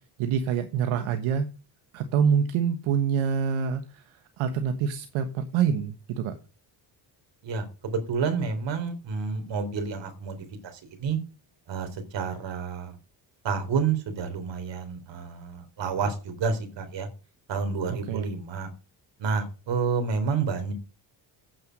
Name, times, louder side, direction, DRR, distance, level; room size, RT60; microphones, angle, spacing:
voice 1, 0.2-1.5 1.9-6.3 17.9-18.3, right 7 dB, 90° right, 7 dB, 1.4 m, -26 dB
voice 2, 7.4-11.2 11.7-13.0 13.4-17.1 17.5-18.7 19.2-20.7, right 5 dB, 65° right, 7 dB, 3.9 m, -29 dB
9.3 x 7.9 x 5.3 m, 0.34 s
cardioid pair, 80°, 46 cm